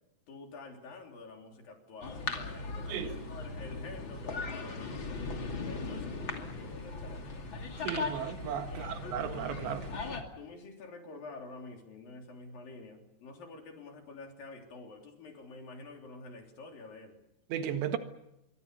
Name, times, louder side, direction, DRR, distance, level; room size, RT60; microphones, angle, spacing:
voice 1, 0.3-5.2 5.6-7.5 8.7-8.9 10.4-17.2, left 3 dB, 50° left, 4.9 m, -48 dB
sound 1, 2.0-10.2, left 3 dB, 35° left, 2.5 m, -38 dB
voice 2, 7.8-9.9 17.5-18.0, right 9 dB, 75° right, 3.9 m, -35 dB
26.5 x 24.0 x 6.8 m
omnidirectional pair, 5.3 m